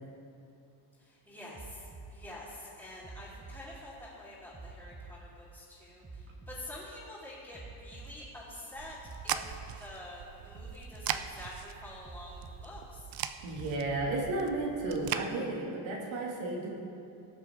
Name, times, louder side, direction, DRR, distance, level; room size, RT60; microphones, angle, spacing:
voice 1, 1.0-1.8 2.1-9.0 9.2-13.0, left 1 dB, 5° left, -12 dB, 2.9 m, -47 dB
sound 1, 1.5-2.1 3.0-3.6 4.5-5.1 6.0-6.6 7.5-8.1 9.0-9.6 10.5-11.1 12.1-12.6 13.6-14.2 15.1-15.2, right 4 dB, 15° right, 1.1 m, -47 dB
sound 2, 8.8-15.3, right 10 dB, 50° right, 0.5 m, -40 dB
voice 2, 13.4-16.7, right 2 dB, 85° right, -2 dB, 2.2 m, -33 dB
17.5 x 7.4 x 3.5 m, 2.6 s
cardioid pair, 105°, 46 cm